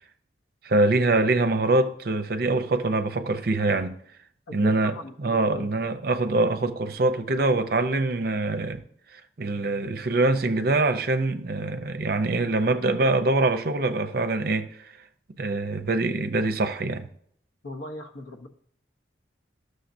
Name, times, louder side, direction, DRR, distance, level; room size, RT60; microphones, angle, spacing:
voice 1, 0.6-4.0 4.5-8.8 9.1-14.9 15.4-17.1, right 2 dB, 55° right, 0.6 m, -24 dB
voice 2, 4.5-5.7 17.6-18.5, left 2 dB, 85° left, 0.9 m, -38 dB
13.0 x 6.5 x 2.6 m
head